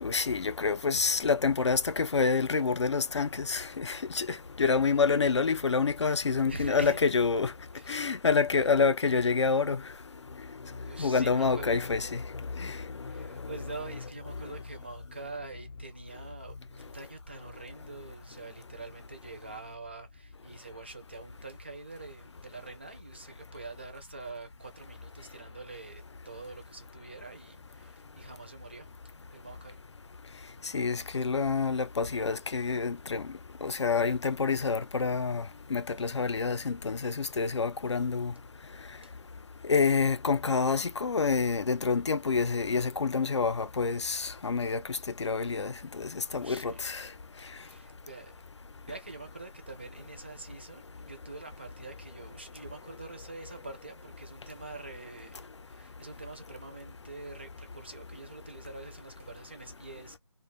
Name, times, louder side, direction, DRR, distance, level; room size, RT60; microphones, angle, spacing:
voice 1, 0.0-7.5 7.9-9.8 11.0-12.2 12.6-12.8 13.5-13.6 30.7-33.3 33.6-35.4 35.7-38.3 39.6-47.1, left 5 dB, 75° left, 0.5 m, -27 dB
voice 2, 6.5-7.0 7.7-8.0 10.8-12.0 13.1-28.9 29.3-29.8 39.0-39.1 46.3-46.9 47.4-48.3 48.9-55.4 55.7-60.2, right 3 dB, 25° right, 0.4 m, -45 dB
2.3 x 2.0 x 3.3 m
figure-of-eight pair, 170°, 15 cm